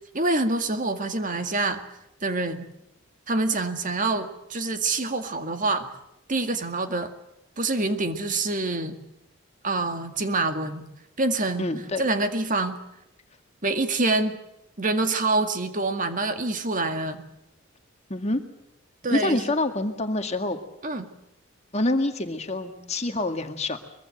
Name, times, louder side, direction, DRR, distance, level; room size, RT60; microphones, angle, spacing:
voice 1, 0.1-1.8 2.2-2.7 3.3-5.9 6.3-7.1 7.6-9.0 9.6-10.9 11.2-11.7 12.0-12.8 13.6-14.4 14.8-17.2 19.0-19.5 20.8-21.1, right 2 dB, 35° right, 7 dB, 2.1 m, -26 dB
voice 2, 11.6-12.0 18.1-18.4 19.1-20.6 21.7-23.8, left 2 dB, 30° left, 6 dB, 2.0 m, -26 dB
23.5 x 23.0 x 8.0 m, 0.83 s
head